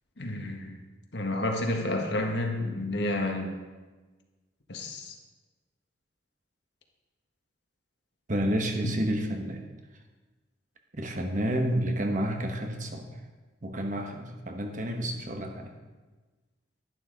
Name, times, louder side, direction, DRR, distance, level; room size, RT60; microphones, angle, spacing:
voice 1, 0.2-0.8 1.1-3.5 4.7-5.1, left 1 dB, 65° left, 2 dB, 1.6 m, -30 dB
voice 2, 8.3-9.6 10.9-13.2 13.6-15.7, equal, 45° right, 4 dB, 1.2 m, -30 dB
11.5 x 11.0 x 4.0 m, 1.3 s
head